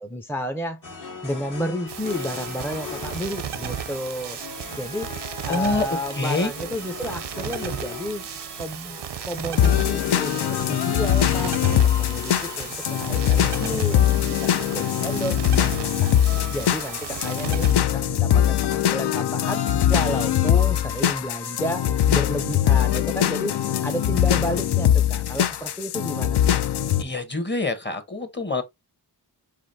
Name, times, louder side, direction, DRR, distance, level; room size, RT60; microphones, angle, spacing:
voice 1, 0.0-0.8 1.2-5.1 5.4-8.3 8.6-16.1 16.5-23.5 23.8-26.4, equal, 5° left, 0.5 m, -32 dB
sound 1, 0.8-17.3, left 4 dB, 50° left, 1.5 m, -40 dB
sound 2, 1.9-17.7, right 9 dB, 85° right, 0.6 m, -35 dB
voice 2, 5.5-6.5 27.0-28.6, left 2 dB, 25° left, 1.0 m, -26 dB
sound 3, 9.6-27.0, left 11 dB, 75° left, 0.5 m, -22 dB
4.9 x 3.5 x 2.6 m
wide cardioid pair, 85°, 40 cm